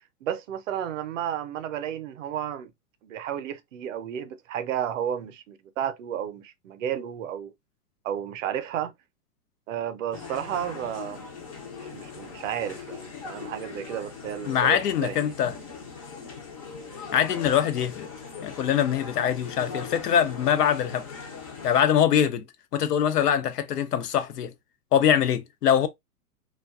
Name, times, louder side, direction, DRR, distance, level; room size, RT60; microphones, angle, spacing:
voice 1, 0.0-2.7 3.0-7.5 8.0-8.9 9.7-11.2 11.8-15.3, right 10 dB, 55° right, 0.5 m, -32 dB
sound 1, 10.1-21.8, left 5 dB, 25° left, 0.4 m, -40 dB
voice 2, 14.5-15.6 17.1-18.1 18.4-21.1 21.6-22.4 22.7-24.5 24.9-25.9, left 9 dB, 85° left, 0.6 m, -23 dB
2.4 x 2.3 x 2.3 m
hypercardioid pair, 130°, 46 cm